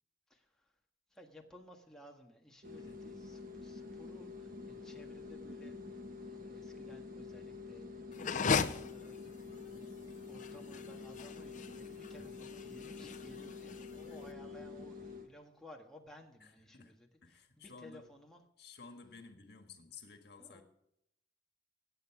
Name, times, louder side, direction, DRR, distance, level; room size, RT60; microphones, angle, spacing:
voice 1, 0.3-0.7 1.1-9.2 10.3-18.4 20.4-20.6, left 1 dB, 5° left, 0 dB, 1.6 m, -57 dB
sound 1, 2.6-15.3, left 4 dB, 50° right, 1.4 m, -47 dB
sound 2, 8.1-14.3, left 5 dB, 45° left, 0.6 m, -37 dB
voice 2, 14.1-14.4 16.4-18.1 18.6-20.6, left 4 dB, 70° left, 6 dB, 1.6 m, -55 dB
16.0 x 9.0 x 4.7 m, 0.77 s
head